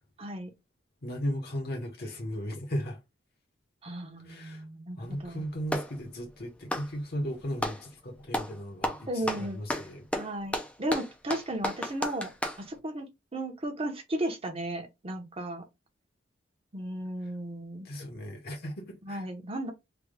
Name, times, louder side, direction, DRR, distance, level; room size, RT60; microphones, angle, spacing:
voice 1, 0.2-0.5 3.8-5.4 9.1-9.6 10.2-12.3 12.6-13.1 13.3-15.7 16.7-17.9 19.0-19.7, right 1 dB, 30° right, 0.8 m, -35 dB
voice 2, 1.0-3.0 4.2-4.6 5.0-10.0 17.8-19.2, equal, 50° left, 0.9 m, -36 dB
Clapping, 5.0-6.0 6.6-7.8 8.3-8.6 8.8-12.6, left 1 dB, 5° left, 0.4 m, -33 dB
3.4 x 2.2 x 3.4 m
head